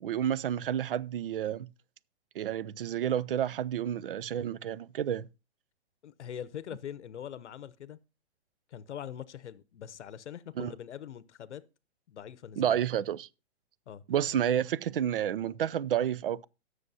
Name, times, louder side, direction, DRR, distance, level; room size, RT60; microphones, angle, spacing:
voice 1, 0.0-1.7 2.3-5.3 10.6-10.7 12.6-13.3 14.1-16.4, right 10 dB, 55° right, 0.4 m, -30 dB
voice 2, 6.0-8.0 8.7-11.6 12.1-12.8 13.9-14.0, left 9 dB, 80° left, 0.8 m, -43 dB
18.5 x 6.4 x 2.7 m
hypercardioid pair, 175°, 34 cm